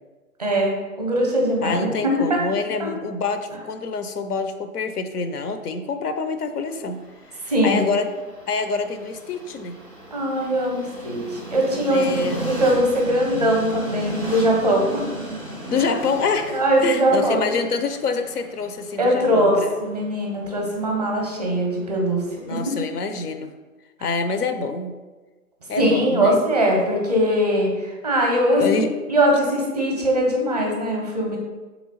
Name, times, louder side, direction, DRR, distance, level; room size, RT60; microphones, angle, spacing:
voice 1, 0.4-1.8 2.2-2.4 7.5-7.8 10.1-15.0 15.8-15.9 16.5-17.5 19.0-22.2 22.5-22.6 24.0-24.1 25.8-31.4, equal, 30° right, -1 dB, 0.5 m, -21 dB
voice 2, 1.6-7.0 7.6-8.1 8.5-9.8 11.9-12.5 15.7-19.8 22.4-23.5 24.0-25.0 25.7-26.4 28.6-28.9, left 4 dB, 80° left, 8 dB, 0.6 m, -26 dB
Train, 6.5-22.6, right 2 dB, 25° left, 0.4 m, -37 dB
3.2 x 3.0 x 4.0 m, 1.3 s
figure-of-eight pair, 150°, 45 cm